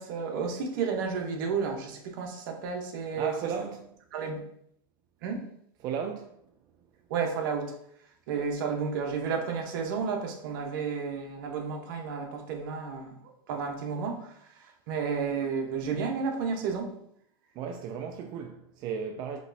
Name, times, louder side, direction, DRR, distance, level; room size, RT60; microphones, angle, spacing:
voice 1, 0.0-3.3 4.1-4.4 5.2-5.4 7.1-7.8 8.3-13.1 13.5-16.9, right 5 dB, 60° right, 0.9 m, -32 dB
voice 2, 3.2-3.9 5.8-6.4 17.6-19.4, right 6 dB, 35° right, 0.4 m, -35 dB
5.1 x 3.1 x 2.6 m
supercardioid pair, 135°, 12 cm